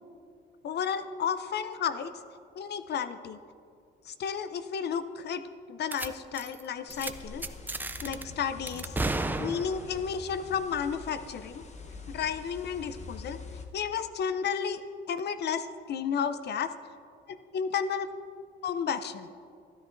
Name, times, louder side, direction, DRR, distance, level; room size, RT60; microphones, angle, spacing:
voice 1, 0.6-2.1 2.6-3.4 4.1-5.4 5.7-7.4 8.0-8.8 9.4-11.6 12.1-13.4 13.7-14.8 15.1-16.7 17.3-18.1 18.6-19.3, left 7 dB, 55° left, 12 dB, 0.6 m, -32 dB
sound 1, 5.9-6.1 6.3-6.6 6.9-7.1 7.4-8.2 8.7-10.0, right 2 dB, 10° right, 0.4 m, -33 dB
sound 2, 6.9-13.7, left 4 dB, 35° left, 0.9 m, -45 dB
13.0 x 10.5 x 2.6 m, 2.3 s
cardioid pair, 90°, 20 cm